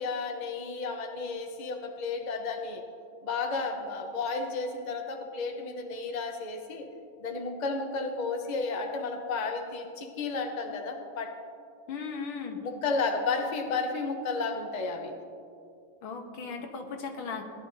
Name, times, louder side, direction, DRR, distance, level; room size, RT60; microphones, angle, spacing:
voice 1, 0.0-2.8 3.2-6.9 7.2-11.4 12.6-15.1, left 4 dB, 40° left, 3 dB, 0.6 m, -32 dB
voice 2, 11.9-12.6 16.0-17.4, left 5 dB, 90° left, 4 dB, 1.9 m, -37 dB
18.5 x 11.0 x 2.7 m, 2.5 s
omnidirectional pair, 2.2 m